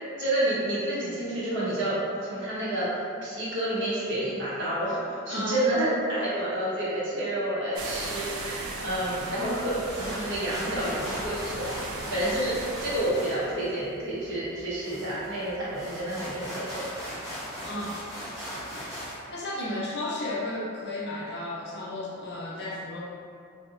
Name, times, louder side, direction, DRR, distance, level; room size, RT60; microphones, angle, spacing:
voice 1, 0.2-1.9 2.2-11.7 12.1-16.8, right 1 dB, 65° right, -9 dB, 0.8 m, -29 dB
voice 2, 5.3-5.6 17.6-18.0 19.3-23.0, left 1 dB, 55° left, -6 dB, 0.6 m, -33 dB
sound 1, 7.7-13.1, right 2 dB, 80° right, 0.4 m, -37 dB
sound 2, 9.6-19.2, equal, 15° right, 0.8 m, -39 dB
2.7 x 2.1 x 2.4 m, 2.4 s
head